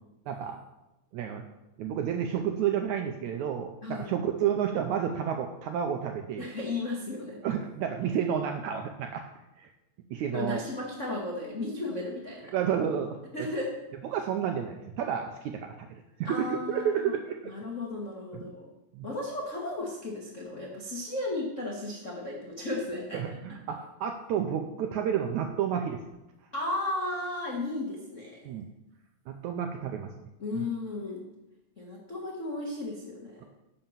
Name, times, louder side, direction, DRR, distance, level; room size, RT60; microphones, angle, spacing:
voice 1, 0.3-0.6 1.1-1.4 1.8-6.5 7.4-9.3 9.6-9.7 10.1-10.6 12.5-13.5 14.0-17.5 18.3-18.5 18.9-19.1 23.1-26.0 28.4-28.7 29.3-30.3 30.5-30.6, right 8 dB, 80° right, 4 dB, 1.7 m, -31 dB
voice 2, 3.8-4.1 6.4-7.4 10.3-12.5 13.3-13.8 16.2-17.1 17.4-18.7 19.0-23.2 26.5-28.6 30.4-31.2 31.8-33.5, left 2 dB, 60° left, -2 dB, 0.7 m, -34 dB
10.5 x 5.7 x 7.2 m, 0.96 s
omnidirectional pair, 4.0 m